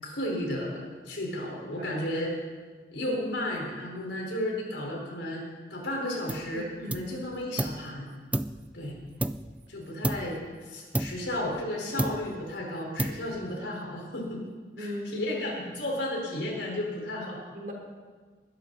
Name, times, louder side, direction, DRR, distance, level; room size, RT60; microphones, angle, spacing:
voice 1, 0.0-0.8 1.1-2.3 2.9-5.4 5.7-8.0 8.7-8.9 9.7-14.4 14.8-17.4, left 1 dB, 85° left, -1 dB, 4.3 m, -33 dB
sound 1, 6.3-6.6 6.9-7.9 8.3-9.7 10.0-10.5 10.9-11.7 12.0-12.5 13.0-13.5, right 1 dB, 10° right, 0.3 m, -32 dB
voice 2, 6.5-7.0 14.8-15.3 17.5-17.7, left 1 dB, 50° right, 0 dB, 3.2 m, -38 dB
20.5 x 12.5 x 4.0 m, 1.5 s
head